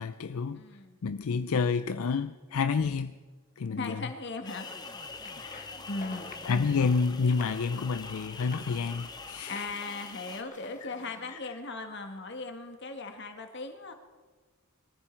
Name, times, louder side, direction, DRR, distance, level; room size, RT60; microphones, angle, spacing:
voice 1, 0.0-0.6 1.0-3.1 3.6-4.0 5.4-5.7 6.4-9.6 10.8-10.9 11.3-11.4, left 5 dB, 75° left, 0.5 m, -29 dB
voice 2, 0.5-1.0 3.8-4.7 5.8-6.3 9.5-13.9, left 3 dB, 50° left, 1.6 m, -38 dB
sound 1, 4.4-10.4, left 4 dB, 20° left, 0.9 m, -44 dB
sound 2, 5.0-11.3, left 3 dB, 35° left, 1.3 m, -50 dB
22.0 x 14.5 x 4.5 m
head